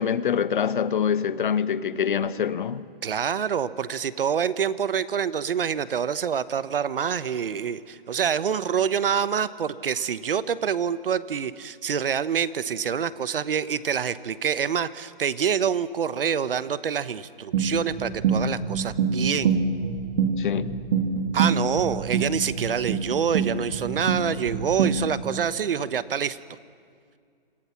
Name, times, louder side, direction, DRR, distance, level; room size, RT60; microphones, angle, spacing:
voice 1, 0.0-2.8 20.4-20.8, left 7 dB, 60° left, 1.2 m, -25 dB
voice 2, 3.0-19.6 21.3-26.4, right 7 dB, 70° right, 1.2 m, -26 dB
sound 1, 17.5-25.2, right 5 dB, 40° right, 2.6 m, -26 dB
27.5 x 26.5 x 6.0 m
hypercardioid pair, 160°, 29 cm